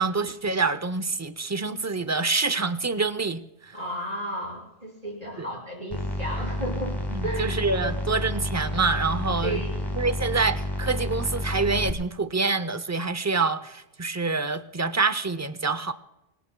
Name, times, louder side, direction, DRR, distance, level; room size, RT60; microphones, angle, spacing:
voice 1, 0.0-3.4 5.4-5.5 7.1-9.6 9.9-15.9, right 4 dB, 20° right, 12 dB, 0.6 m, -26 dB
voice 2, 3.7-7.9 9.4-10.0, equal, 40° right, -4 dB, 5.9 m, -34 dB
sound 1, 5.9-11.9, equal, 25° left, 1.7 m, -30 dB
27.5 x 19.0 x 2.3 m, 0.97 s
omnidirectional pair, 1.0 m